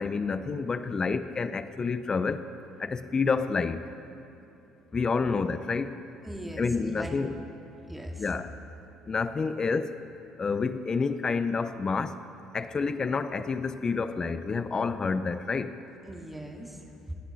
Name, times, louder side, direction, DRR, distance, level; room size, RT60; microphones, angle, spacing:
voice 1, 0.0-2.4 2.8-3.8 4.9-5.9 6.6-7.4 8.2-8.5 9.1-9.9 10.4-12.2 12.5-15.8, left 4 dB, 35° left, 11 dB, 0.8 m, -29 dB
voice 2, 6.2-7.2 7.9-8.3 16.1-17.1, right 1 dB, 5° right, 1 dB, 2.4 m, -39 dB
27.0 x 9.9 x 4.2 m, 2.7 s
supercardioid pair, 65°, 2 cm